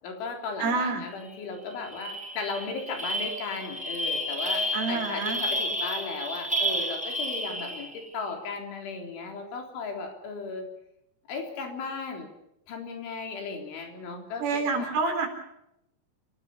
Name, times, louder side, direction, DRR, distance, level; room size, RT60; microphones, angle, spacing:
voice 1, 0.0-10.7 11.3-12.3 12.7-14.5 14.8-14.9, left 4 dB, 70° left, 4 dB, 6.1 m, -36 dB
voice 2, 0.6-1.0 4.7-5.4 14.4-15.3, right 4 dB, 80° right, 4 dB, 6.6 m, -27 dB
sound 1, 1.2-1.4 1.7-8.1, equal, ahead, 1.9 m, -31 dB
29.0 x 17.0 x 7.1 m, 0.80 s
omnidirectional pair, 5.7 m